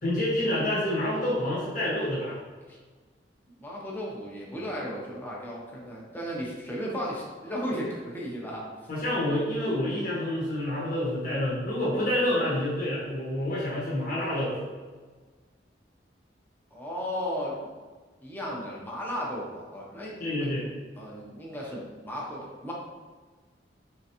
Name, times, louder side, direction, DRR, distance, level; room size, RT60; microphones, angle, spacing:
voice 1, 0.0-2.4 8.9-14.6 20.2-20.7, left 1 dB, 50° left, -8 dB, 1.1 m, -28 dB
voice 2, 3.6-8.7 16.7-17.7 18.2-20.5 21.0-22.7, equal, 10° left, -4 dB, 0.7 m, -35 dB
3.8 x 3.3 x 2.8 m, 1.4 s
head